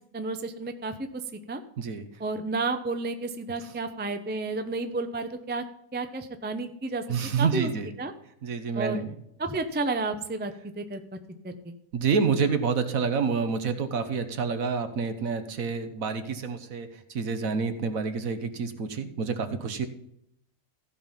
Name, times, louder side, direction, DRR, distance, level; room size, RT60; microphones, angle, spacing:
voice 1, 0.1-1.6 2.2-5.6 5.9-7.0 7.4-7.7 8.0-8.1 8.7-9.0 9.4-11.0 11.4-11.7, right 3 dB, 10° right, 7 dB, 0.4 m, -31 dB
voice 2, 7.1-7.9 8.4-9.1 11.9-19.9, right 5 dB, 65° right, 9 dB, 1.4 m, -28 dB
15.0 x 5.4 x 5.7 m, 0.74 s
omnidirectional pair, 1.6 m